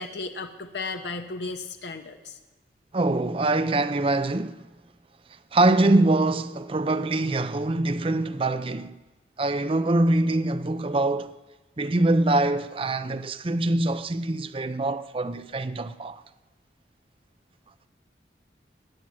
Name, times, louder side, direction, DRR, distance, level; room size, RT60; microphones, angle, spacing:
voice 1, 0.0-2.4, left 3 dB, 75° left, 1.0 m, -35 dB
voice 2, 2.9-4.6 5.5-8.9 9.4-11.4 11.8-16.2, right 2 dB, 30° right, 0.5 m, -24 dB
19.5 x 9.2 x 7.4 m
head